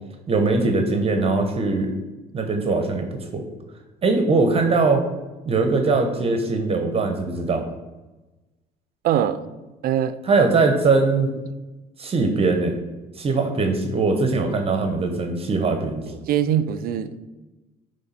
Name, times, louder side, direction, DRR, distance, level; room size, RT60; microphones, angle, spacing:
voice 1, 0.3-1.9 2.3-3.4 4.0-5.1 5.4-7.6 10.2-11.3 12.0-12.8 13.2-16.0, right 3 dB, 35° right, 5 dB, 0.8 m, -21 dB
voice 2, 9.0-9.4 9.8-10.2 16.1-17.2, right 10 dB, 60° right, 13 dB, 0.4 m, -22 dB
8.5 x 3.2 x 4.2 m, 1.1 s
cardioid pair, 110°, 17 cm